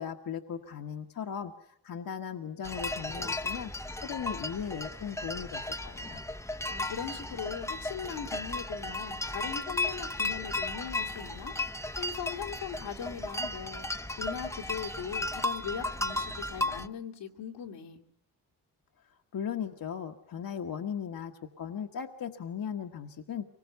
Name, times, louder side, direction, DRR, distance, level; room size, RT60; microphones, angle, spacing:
voice 1, 0.0-1.5 1.8-3.7 4.0-6.2 19.3-23.5, left 8 dB, 55° left, 4 dB, 1.4 m, -37 dB
sound 1, 2.6-16.9, left 2 dB, 5° left, 0.8 m, -35 dB
voice 2, 6.7-11.5 12.0-13.9 14.2-18.0, left 8 dB, 85° left, 2 dB, 2.5 m, -39 dB
24.0 x 20.5 x 6.9 m, 0.70 s
supercardioid pair, 60°, 41 cm